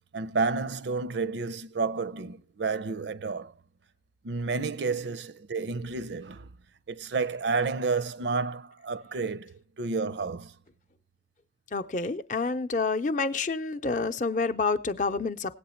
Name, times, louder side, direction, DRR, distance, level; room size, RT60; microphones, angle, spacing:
voice 1, 0.1-3.5 4.2-6.5 6.9-10.5, right 4 dB, 75° right, 0.5 m, -30 dB
voice 2, 11.7-15.6, left 4 dB, 45° left, 0.5 m, -28 dB
17.5 x 8.4 x 4.3 m
head